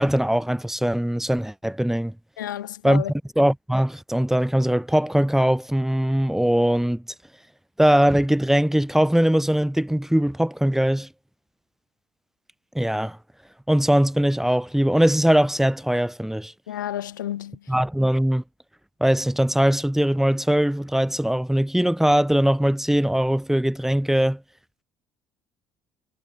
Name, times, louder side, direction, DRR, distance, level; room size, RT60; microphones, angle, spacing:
voice 1, 0.0-2.1 2.8-3.0 3.4-7.0 7.8-11.1 12.7-13.2 13.7-16.5 17.7-18.4 19.0-24.4, equal, 5° right, 2.3 m, -21 dB
voice 2, 2.4-3.1 16.7-17.7, left 12 dB, 85° left, 1.3 m, -31 dB
hypercardioid pair, 55°, 10 cm